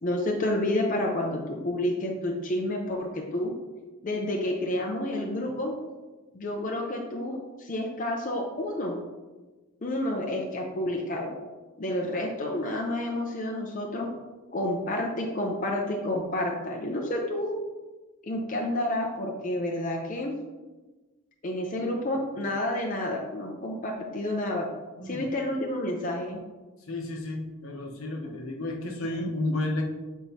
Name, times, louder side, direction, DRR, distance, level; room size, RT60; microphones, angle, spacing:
voice 1, 0.0-3.5 4.0-5.7 6.3-8.9 9.8-11.3 11.8-14.1 14.5-17.6 18.2-20.3 21.4-24.7 25.0-26.4, left 1 dB, 35° left, 0 dB, 0.6 m, -29 dB
voice 2, 26.9-29.8, left 2 dB, 70° left, 2 dB, 0.9 m, -32 dB
7.9 x 4.5 x 2.8 m, 1.2 s
head